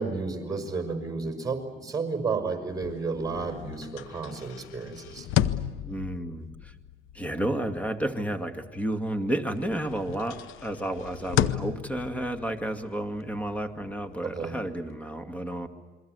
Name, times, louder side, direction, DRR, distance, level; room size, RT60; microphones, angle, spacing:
voice 1, 0.0-5.3 14.2-14.5, right 4 dB, 20° right, 4 dB, 5.7 m, -32 dB
sound 1, 2.7-9.2 9.5-14.9, left 12 dB, 85° left, 0.8 m, -34 dB
voice 2, 5.8-6.7 7.1-15.7, right 1 dB, 5° left, 7 dB, 2.2 m, -31 dB
28.5 x 22.5 x 8.1 m, 1.3 s
cardioid pair, 90°, 20 cm